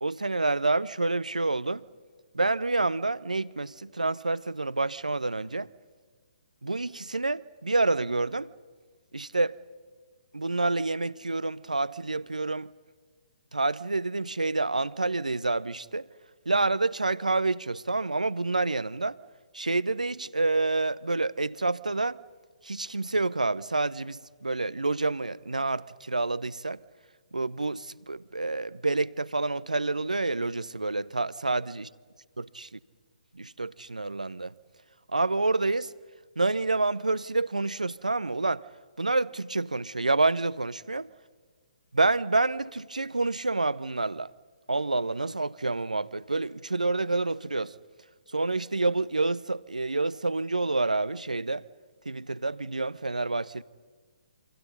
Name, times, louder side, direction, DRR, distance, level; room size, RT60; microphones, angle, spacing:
voice 1, 0.0-1.8 2.3-5.7 6.6-8.5 9.1-9.6 10.3-12.7 13.5-16.1 16.5-19.2 19.5-22.2 22.6-26.8 27.3-31.9 32.4-32.7 33.3-34.5 35.1-35.9 36.4-38.7 39.0-41.1 41.9-44.3 44.7-47.8 48.3-51.7 52.1-53.6, right 3 dB, 80° right, 0.7 m, -28 dB
28.5 x 25.5 x 5.4 m
figure-of-eight pair, 130°, 4 cm